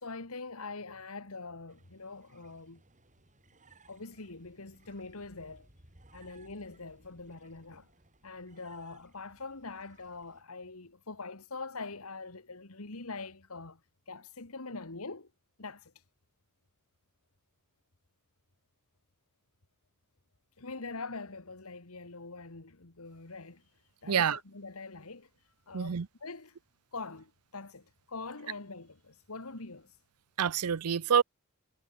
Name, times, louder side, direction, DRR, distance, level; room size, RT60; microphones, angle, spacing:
voice 1, 0.0-2.8 3.9-5.7 6.1-7.9 8.2-13.8 14.1-15.3 15.6-15.9 20.6-23.6 24.0-25.3 25.7-26.6 26.9-29.9, left 3 dB, 70° left, 1.9 m, -43 dB
sound 1, 1.7-10.4, right 2 dB, 35° right, 5.2 m, -62 dB
voice 2, 24.1-24.4 25.7-26.1 30.4-31.2, right 7 dB, 90° right, 0.6 m, -27 dB
head